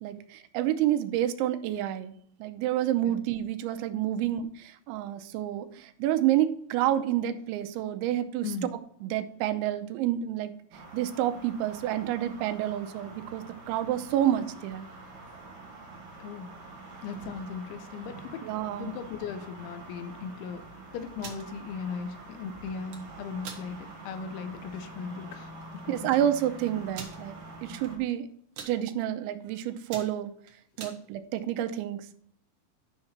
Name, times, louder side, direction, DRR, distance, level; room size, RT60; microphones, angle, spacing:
voice 1, 0.0-2.1 2.4-4.5 4.9-8.5 9.0-10.5 10.9-14.9 18.4-19.0 25.9-28.3 28.7-30.3 30.8-32.1, right 12 dB, 90° right, 9 dB, 3.0 m, -29 dB
sound 1, 10.7-28.0, right 2 dB, 55° right, 3.6 m, -46 dB
voice 2, 16.2-16.6 17.0-18.4 18.7-20.6 20.9-25.8 26.2-26.3 27.7-27.9, left 6 dB, 85° left, 9 dB, 3.2 m, -38 dB
sound 2, 21.1-21.5 22.7-23.0 23.4-23.6 24.1-24.2 24.6-24.8 25.6-25.7 25.9-26.0 26.9-27.2 27.8-28.1 28.4-28.7 29.3-29.5 29.8-31.0, right 6 dB, 70° right, 1.8 m, -42 dB
10.5 x 5.9 x 4.3 m, 0.64 s
omnidirectional pair, 5.3 m